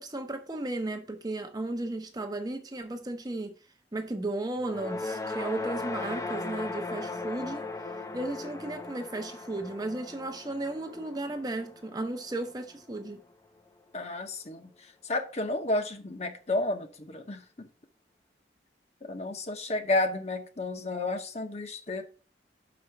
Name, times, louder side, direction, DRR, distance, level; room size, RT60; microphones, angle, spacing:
voice 1, 0.0-3.5 3.9-7.7 8.1-13.2, right 2 dB, 20° right, 0.7 m, -35 dB
sound 1, 4.6-13.0, left 3 dB, 20° left, 0.6 m, -38 dB
voice 2, 13.9-14.7 15.0-17.7 19.0-22.0, left 2 dB, 40° left, 1.0 m, -31 dB
6.2 x 5.1 x 5.7 m
head